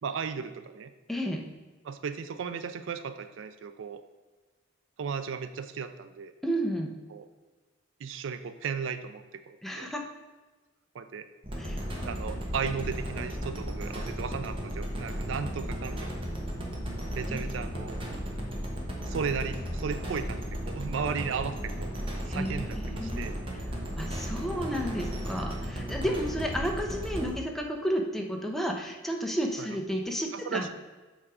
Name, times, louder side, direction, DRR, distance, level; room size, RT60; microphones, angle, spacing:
voice 1, 0.0-0.9 1.8-4.0 5.0-6.3 7.1-7.3 8.0-9.9 10.9-11.3 12.1-16.2 17.1-18.0 19.1-22.0 22.3-23.4 26.0-26.2 29.6-29.7 30.3-30.7, right 6 dB, 75° right, 11 dB, 0.4 m, -35 dB
voice 2, 1.1-1.4 6.4-7.0 9.6-10.1 11.6-11.8 17.3-17.4 22.3-23.2 24.0-30.6, equal, ahead, 1 dB, 0.6 m, -32 dB
sound 1, 11.4-27.3, equal, 30° right, 1.1 m, -35 dB
7.4 x 3.6 x 4.7 m, 1.2 s
head